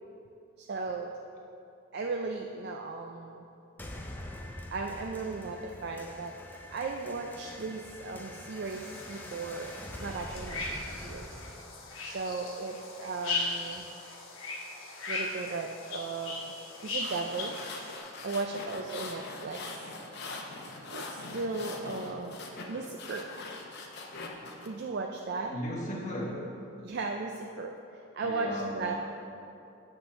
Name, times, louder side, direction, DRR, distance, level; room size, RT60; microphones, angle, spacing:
voice 1, 0.6-1.1 1.9-3.5 4.7-6.3 6.7-11.4 12.0-13.9 15.1-16.5 16.8-17.6 18.2-19.8 20.9-22.4 22.7-23.3 24.7-25.5 26.8-27.7 28.1-29.0, right 3 dB, 50° right, 2 dB, 0.4 m, -36 dB
sound 1, 3.8-12.8, left 1 dB, 10° left, 0.5 m, -45 dB
sound 2, 8.6-18.0, left 3 dB, 70° left, 1.2 m, -38 dB
sound 3, 16.8-24.7, left 3 dB, 50° left, 0.8 m, -42 dB
voice 2, 25.5-26.6 28.2-29.0, equal, 35° left, -4 dB, 1.3 m, -36 dB
8.5 x 3.7 x 6.6 m, 2.7 s
head